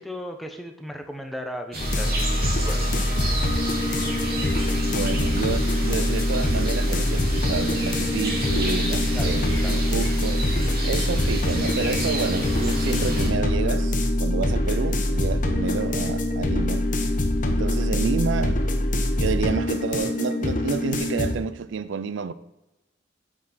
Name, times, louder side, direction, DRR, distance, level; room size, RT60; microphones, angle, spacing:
voice 1, 0.0-3.2 9.1-9.9, equal, ahead, 0.8 m, -37 dB
sound 1, 1.7-13.3, right 1 dB, 50° right, 2.6 m, -31 dB
sound 2, 1.8-21.3, left 1 dB, 45° left, 1.0 m, -24 dB
voice 2, 4.8-10.5 10.8-16.8 17.4-18.7 19.2-22.3, right 5 dB, 70° right, 0.4 m, -29 dB
8.5 x 6.4 x 4.3 m
head